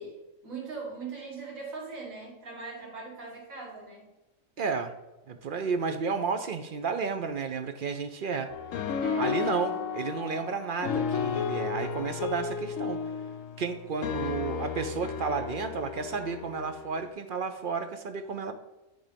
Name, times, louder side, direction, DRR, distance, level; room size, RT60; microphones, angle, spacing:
voice 1, 0.0-4.1 9.0-9.7 14.2-14.7, right 4 dB, 85° right, -4 dB, 2.4 m, -41 dB
voice 2, 4.6-4.9 5.3-8.5 9.2-13.0 13.6-18.5, right 5 dB, 55° right, 7 dB, 0.6 m, -32 dB
sound 1, 8.5-17.1, left 6 dB, 75° left, 1.1 m, -33 dB
10.0 x 3.6 x 5.1 m, 1.0 s
omnidirectional pair, 1.4 m